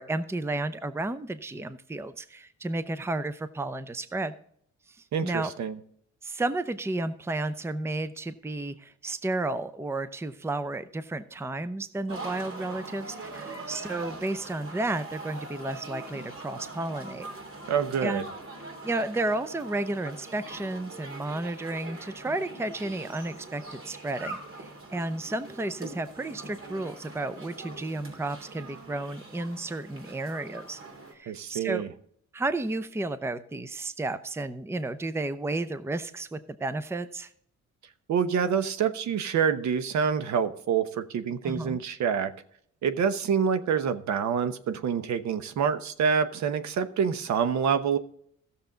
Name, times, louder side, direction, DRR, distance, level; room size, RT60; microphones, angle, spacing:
voice 1, 0.0-4.3 5.2-5.5 6.2-17.3 18.0-18.3 18.8-30.8 31.1-31.8 32.3-37.3 41.4-41.8, right 2 dB, 10° right, 13 dB, 0.6 m, -32 dB
voice 2, 5.1-5.8 17.7-18.2 31.3-31.9 38.1-42.3 42.8-48.0, right 7 dB, 65° right, 11 dB, 1.0 m, -27 dB
sound 1, 12.1-31.1, right 2 dB, 45° right, 3.0 m, -42 dB
14.5 x 7.0 x 3.8 m, 0.65 s
cardioid pair, 90°, 30 cm